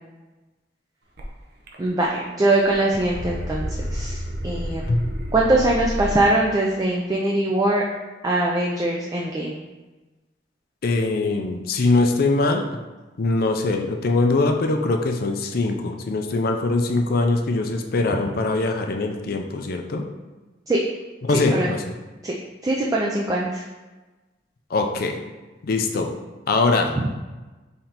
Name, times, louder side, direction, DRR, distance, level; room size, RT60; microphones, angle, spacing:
sound 1, 1.2-1.3 1.7-2.2 2.5-6.5, equal, 60° right, 0.6 m, -31 dB
voice 1, 1.8-4.9 5.3-7.8 8.2-9.6 20.7-20.8 21.3-21.8 22.2-22.3 22.6-23.6 27.0-27.1, right 2 dB, 20° right, -2 dB, 0.3 m, -22 dB
voice 2, 10.8-12.7 13.2-20.1 21.2-21.8 24.7-25.2 25.6-26.1 26.5-27.0, left 3 dB, 55° left, 4 dB, 0.4 m, -22 dB
5.7 x 3.3 x 2.9 m, 1.2 s
head